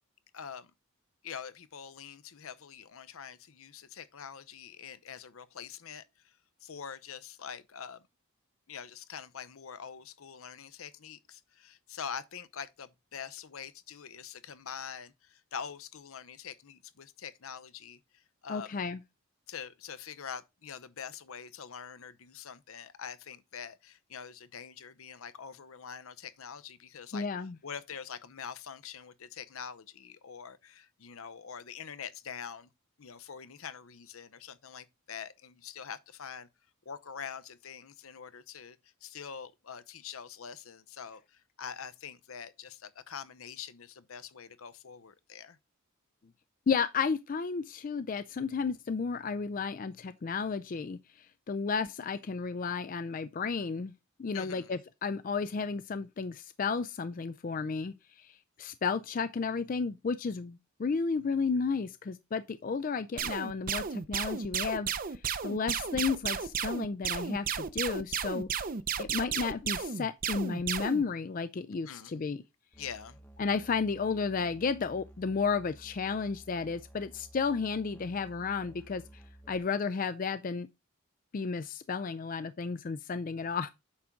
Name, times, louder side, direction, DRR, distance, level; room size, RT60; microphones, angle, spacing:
voice 1, 0.3-0.7 1.2-8.0 8.7-18.8 19.5-27.3 27.6-32.7 33.0-36.5 36.9-45.6 54.3-54.7 71.7-72.1 72.8-73.2, left 7 dB, 75° left, 0.7 m, -44 dB
voice 2, 18.5-19.0 27.1-27.6 46.7-53.9 54.2-64.9 65.4-68.5 69.0-72.4 73.4-79.0 79.5-80.7 81.3-83.7, left 5 dB, 40° left, 0.4 m, -33 dB
sound 1, 63.2-71.0, right 7 dB, 40° right, 0.6 m, -33 dB
Musical instrument, 72.7-79.6, right 1 dB, 10° left, 0.8 m, -54 dB
8.6 x 3.7 x 5.8 m
head